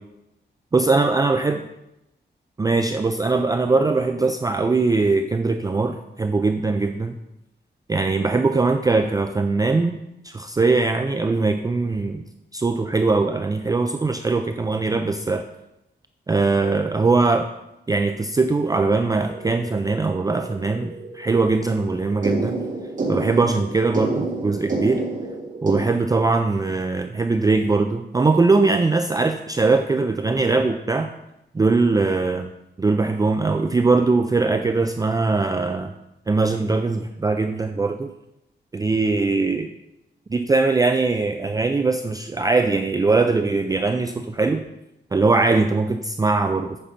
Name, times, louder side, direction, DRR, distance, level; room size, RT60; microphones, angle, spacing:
voice 1, 0.7-1.6 2.6-7.2 7.9-10.0 10.2-12.2 12.5-15.5 16.3-17.5 17.9-22.6 23.1-25.0 25.6-31.1 31.5-32.5 32.8-35.9 36.3-38.1 38.7-39.7 40.3-44.6 45.1-46.8, right 3 dB, 20° right, 7 dB, 0.4 m, -21 dB
sound 1, 19.3-25.7, right 2 dB, 45° right, 1.9 m, -30 dB
8.6 x 6.2 x 5.7 m, 0.91 s
wide cardioid pair, 180°, 19 cm